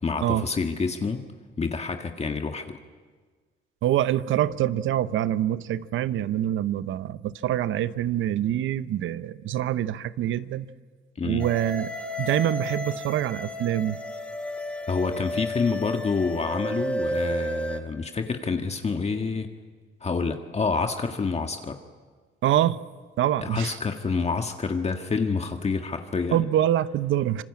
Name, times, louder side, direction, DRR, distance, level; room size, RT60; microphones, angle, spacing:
voice 1, 0.0-1.2 1.6-2.8 11.2-11.4 14.9-19.5 20.0-21.8 23.4-26.4, left 4 dB, 35° left, 5 dB, 1.7 m, -28 dB
voice 2, 3.8-10.7 11.2-11.9 12.2-14.0 22.4-22.8 23.2-23.8 26.3-27.4, right 12 dB, 80° right, 15 dB, 0.9 m, -25 dB
sound 1, 11.4-17.8, equal, 5° left, 2.9 m, -32 dB
26.5 x 22.5 x 8.6 m, 1.5 s
cardioid pair, 90°, 20 cm